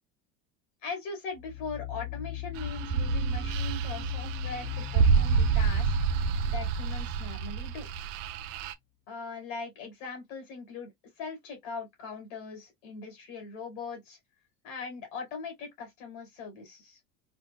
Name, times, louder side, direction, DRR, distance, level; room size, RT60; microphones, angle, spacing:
voice 1, 0.8-5.9 6.4-7.9 9.1-10.9 11.2-14.2 14.6-17.0, left 4 dB, 80° left, 2.3 m, -40 dB
sound 1, 1.4-8.0, left 12 dB, 20° left, 0.6 m, -38 dB
sound 2, 2.5-8.7, right 6 dB, 80° right, 0.5 m, -28 dB
4.4 x 2.2 x 2.4 m
supercardioid pair, 115°, 37 cm